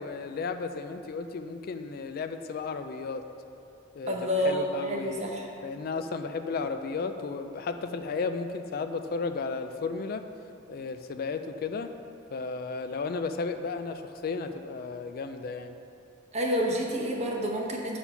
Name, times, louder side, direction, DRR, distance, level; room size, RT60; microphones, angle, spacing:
voice 1, 0.0-3.2 3.9-5.3 5.6-10.3 10.7-11.9 12.3-15.8, left 4 dB, 55° left, 8 dB, 0.4 m, -34 dB
voice 2, 4.1-5.5 16.3-18.0, equal, 35° right, -1 dB, 1.0 m, -29 dB
8.3 x 4.4 x 5.6 m, 2.8 s
head